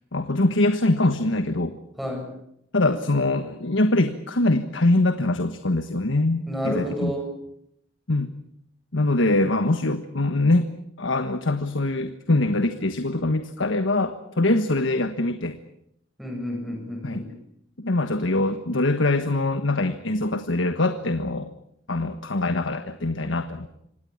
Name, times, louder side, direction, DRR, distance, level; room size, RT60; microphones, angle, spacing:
voice 1, 0.1-1.7 2.7-7.1 8.1-8.3 8.9-10.7 11.0-15.6 17.0-17.2 17.8-21.5 21.9-23.7, left 2 dB, 75° left, 9 dB, 1.4 m, -23 dB
voice 2, 2.0-2.3 6.5-7.3 16.2-17.3, equal, ahead, 1 dB, 7.6 m, -30 dB
26.0 x 18.5 x 8.6 m, 0.75 s
head